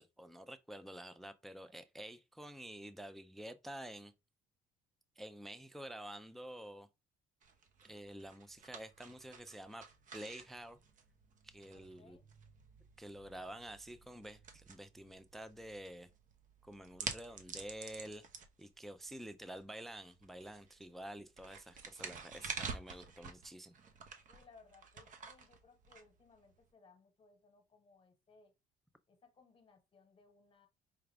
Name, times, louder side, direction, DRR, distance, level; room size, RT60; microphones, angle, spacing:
voice 1, 0.0-4.1 5.2-6.9 7.8-10.8 11.4-12.2 13.0-16.1 16.6-18.3 18.6-23.8, right 1 dB, ahead, 0.3 m, -49 dB
sound 1, 7.4-26.6, right 5 dB, 50° right, 0.8 m, -50 dB
voice 2, 11.7-12.3 24.3-28.5 29.1-30.7, left 4 dB, 30° left, 1.1 m, -64 dB
4.9 x 2.3 x 3.3 m
cardioid pair, 110°, 17 cm